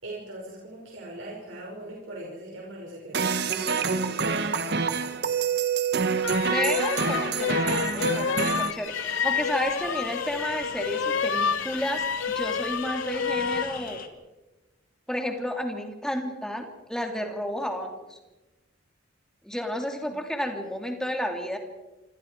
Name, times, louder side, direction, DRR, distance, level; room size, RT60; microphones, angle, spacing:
voice 1, 0.0-5.2 20.4-20.5, right 1 dB, 85° right, -2 dB, 5.6 m, -41 dB
sound 1, 3.1-8.7, right 5 dB, 55° right, 1.3 m, -26 dB
sound 2, 6.2-13.7, left 6 dB, 80° left, 0.8 m, -29 dB
voice 2, 6.5-14.0 15.1-18.2 19.4-21.6, equal, 5° left, 3 dB, 2.8 m, -32 dB
sound 3, 8.9-14.1, left 6 dB, 45° left, 2.1 m, -40 dB
26.5 x 26.5 x 4.7 m, 1.1 s
head